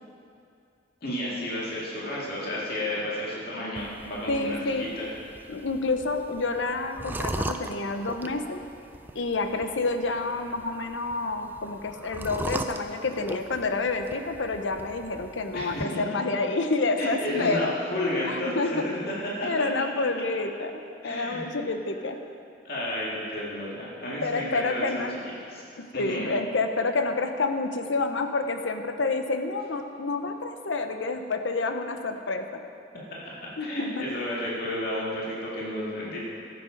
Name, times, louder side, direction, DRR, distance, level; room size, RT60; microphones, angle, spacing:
voice 1, 1.0-5.1 15.5-16.0 17.0-19.0 19.4-19.5 21.0-21.4 22.6-25.0 25.4-25.6 25.9-26.3 33.2-33.3 33.6-36.2, left 1 dB, 50° left, -6 dB, 2.2 m, -32 dB
sound 1, 3.8-15.8, right 2 dB, 10° right, 0.3 m, -39 dB
voice 2, 4.3-4.9 5.5-8.6 9.1-17.7 18.2-19.0 19.4-20.7 21.0-22.2 24.2-25.2 26.0-32.4 33.6-34.0, left 3 dB, 70° left, 7 dB, 0.7 m, -28 dB
13.5 x 7.7 x 5.1 m, 2.6 s
head